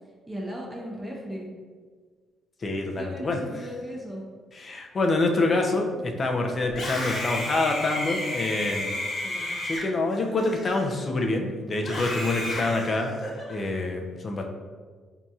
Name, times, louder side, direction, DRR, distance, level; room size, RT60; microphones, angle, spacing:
voice 1, 0.3-1.5 3.0-4.2 9.2-9.5, equal, 15° right, -2 dB, 0.7 m, -37 dB
voice 2, 2.6-3.4 4.5-8.9 9.6-13.1 13.5-14.5, left 2 dB, 40° left, 2 dB, 0.5 m, -26 dB
Screaming, 6.7-11.2 11.8-13.5, left 1 dB, 60° left, 1.2 m, -32 dB
4.0 x 2.8 x 2.3 m, 1.5 s
cardioid pair, 90°, 0 cm